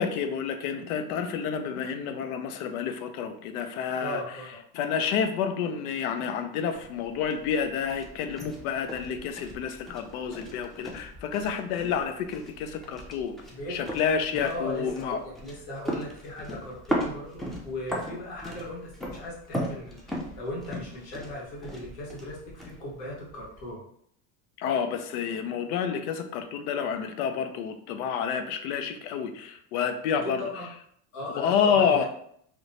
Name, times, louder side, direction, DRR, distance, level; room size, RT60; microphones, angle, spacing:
voice 1, 0.0-4.2 4.7-13.4 13.7-15.2 24.6-30.4 31.4-32.1, left 7 dB, 85° left, 8 dB, 0.5 m, -29 dB
voice 2, 4.0-4.6 13.5-13.8 14.3-23.8 30.2-30.7 31.1-32.1, left 1 dB, 70° left, -4 dB, 1.4 m, -38 dB
sound 1, 6.7-23.7, equal, ahead, 0.4 m, -38 dB
2.9 x 2.1 x 2.6 m, 0.67 s
supercardioid pair, 100°, 43 cm